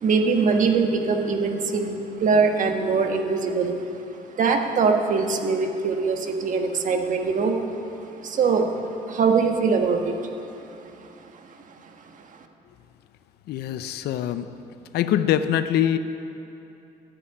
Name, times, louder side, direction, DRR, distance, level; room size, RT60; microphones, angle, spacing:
voice 1, 0.0-3.8 4.4-7.6 8.1-10.2, right 4 dB, 50° right, 4 dB, 1.5 m, -22 dB
voice 2, 13.5-14.5 14.9-16.0, left 10 dB, 70° left, 11 dB, 0.6 m, -23 dB
12.5 x 8.4 x 9.8 m, 2.9 s
cardioid pair, 110°, 17 cm